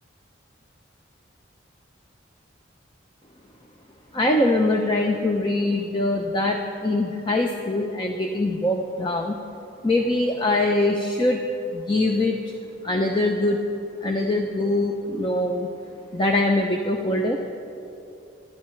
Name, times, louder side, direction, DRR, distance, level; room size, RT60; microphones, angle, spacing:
voice 1, 4.1-9.4 9.8-11.4 11.7-12.5 12.8-13.6 14.0-15.7 16.1-17.4, left 2 dB, 25° left, 2 dB, 0.7 m, -23 dB
27.0 x 11.5 x 3.2 m, 2.8 s
head